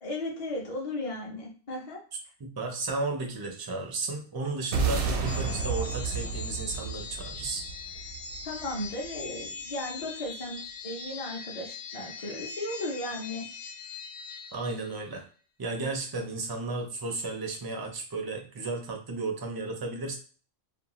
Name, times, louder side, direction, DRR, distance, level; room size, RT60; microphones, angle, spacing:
voice 1, 0.0-2.0 8.4-13.5, left 1 dB, 45° left, -2 dB, 0.5 m, -35 dB
voice 2, 2.4-7.6 14.5-15.2 15.6-20.1, right 3 dB, 40° right, 2 dB, 0.3 m, -33 dB
sound 1, 4.7-9.2, right 5 dB, 80° right, 0.8 m, -31 dB
sound 2, 5.3-15.1, left 5 dB, 75° left, 1.0 m, -41 dB
2.5 x 2.2 x 2.9 m, 0.40 s
omnidirectional pair, 1.1 m